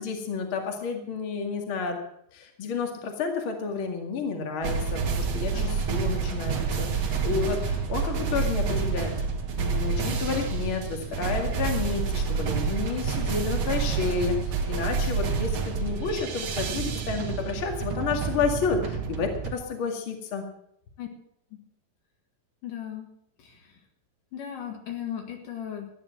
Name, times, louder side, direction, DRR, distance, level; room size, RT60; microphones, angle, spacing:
voice 1, 0.0-2.0 2.3-9.1 9.6-20.5, left 5 dB, 40° left, 3 dB, 2.5 m, -30 dB
sound 1, 4.6-19.5, right 5 dB, 50° right, 2.5 m, -28 dB
voice 2, 22.6-23.1 23.4-23.8 24.3-25.9, left 10 dB, 65° left, 3 dB, 3.3 m, -37 dB
15.0 x 9.9 x 7.8 m, 0.73 s
omnidirectional pair, 4.1 m